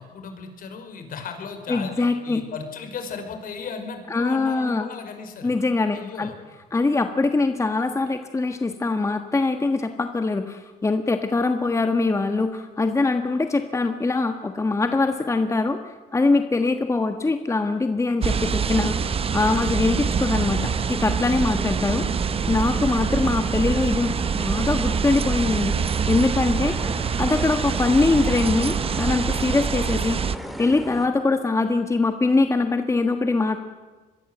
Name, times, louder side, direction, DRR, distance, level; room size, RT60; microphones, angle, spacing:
voice 1, 0.0-5.5 5.9-6.4 26.5-26.9, left 5 dB, 55° left, 6 dB, 5.3 m, -36 dB
voice 2, 1.7-2.4 4.1-4.9 5.4-6.3 6.7-22.1 22.5-25.8 26.1-30.2 30.6-33.6, left 3 dB, 15° left, 7 dB, 1.4 m, -23 dB
sound 1, 18.2-31.1, equal, ahead, 2.8 m, -36 dB
sound 2, 18.2-30.4, right 6 dB, 35° right, 0.9 m, -25 dB
26.0 x 22.0 x 7.9 m, 1.3 s
cardioid pair, 110°, 17 cm